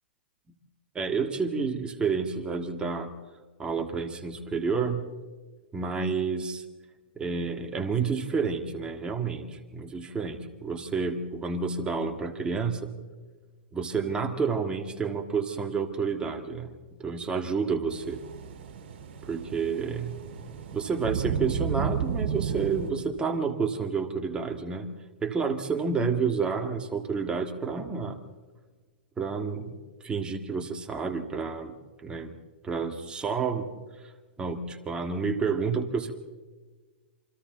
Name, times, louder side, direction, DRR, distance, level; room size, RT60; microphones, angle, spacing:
voice 1, 1.0-3.1 3.6-5.1 5.7-6.6 7.2-12.9 13.7-18.2 19.3-20.2 20.7-24.9 25.2-28.2 29.2-29.8 30.0-31.8 32.0-32.3 32.6-33.7 34.4-36.1, right 5 dB, 15° right, 6 dB, 2.0 m, -29 dB
sound 1, 17.9-22.9, right 7 dB, 60° right, 5.4 m, -33 dB
28.0 x 24.5 x 4.0 m, 1.4 s
hypercardioid pair, 130°, 6 cm